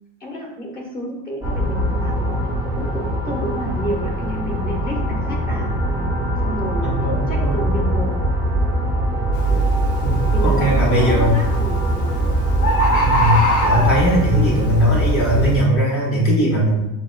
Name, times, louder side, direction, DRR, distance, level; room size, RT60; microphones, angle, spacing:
voice 1, 0.2-2.5 2.8-5.7 6.4-6.9 7.3-8.1 10.3-12.2, equal, 25° left, -2 dB, 1.2 m, -30 dB
sound 1, 1.4-15.6, right 1 dB, 10° right, 0.7 m, -21 dB
voice 2, 6.8-7.5 9.5-9.6 10.0-11.3 13.0-13.3 13.6-16.9, right 1 dB, 40° left, -4 dB, 1.4 m, -19 dB
Bird, 9.3-9.6 10.1-10.6 11.6-11.7 12.0-12.1 12.3-12.4 12.6-14.3 14.9-15.0, equal, 75° left, 0.8 m, -19 dB
6.7 x 2.5 x 2.3 m, 0.91 s
cardioid pair, 130°, 36 cm